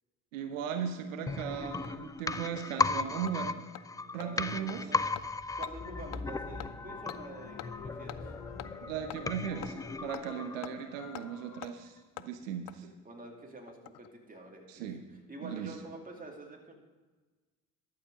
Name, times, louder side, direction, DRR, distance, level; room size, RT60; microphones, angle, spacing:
voice 1, 0.3-3.6 4.1-4.8 8.8-12.9 14.7-15.0 15.4-15.7, right 8 dB, 90° right, 7 dB, 0.8 m, -37 dB
Hammer, 0.9-1.0 1.4-1.5 1.8-1.9 2.3-2.4 2.8-2.9 3.3-3.4 3.8-3.9 4.2-4.3 4.7-4.8 5.2-5.3 5.6-5.7 6.1-6.3 6.6-6.7 7.1-7.2 7.6-7.7 8.1-8.2 8.6-8.7 9.1-9.2 9.6-9.7 10.1-10.3 10.6-10.7 11.2-11.3 11.6-11.7 12.2-12.3 12.7-12.8 13.7-14.1 14.3-14.4, left 15 dB, 55° left, 0.6 m, -44 dB
sound 1, 1.3-11.0 11.3-11.4, left 3 dB, 10° left, 0.3 m, -36 dB
sound 2, 2.6-4.6 5.8-11.6, left 6 dB, 80° left, 1.4 m, -50 dB
voice 2, 4.2-5.0 5.6-8.3 12.7-14.8 15.3-16.7, right 2 dB, 20° right, 1 dB, 2.6 m, -47 dB
12.0 x 7.8 x 5.2 m, 1.3 s
hypercardioid pair, 60°, 38 cm